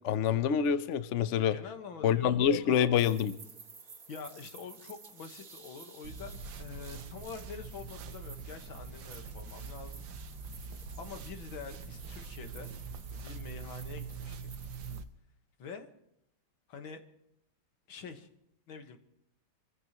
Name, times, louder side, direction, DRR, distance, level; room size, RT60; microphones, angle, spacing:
voice 1, 0.0-1.5 2.0-3.3, left 8 dB, 60° left, 12 dB, 0.7 m, -26 dB
voice 2, 1.5-2.9 4.1-10.1 11.0-12.7 13.1-14.5 15.6-15.9 16.7-17.0 17.9-18.3 18.7-19.0, left 5 dB, 80° left, 6 dB, 2.2 m, -46 dB
sound 1, 2.9-15.0, right 4 dB, 45° right, 2.1 m, -53 dB
sound 2, 6.0-15.1, right 5 dB, 70° right, 1.6 m, -44 dB
25.0 x 15.5 x 3.0 m, 0.78 s
omnidirectional pair, 2.2 m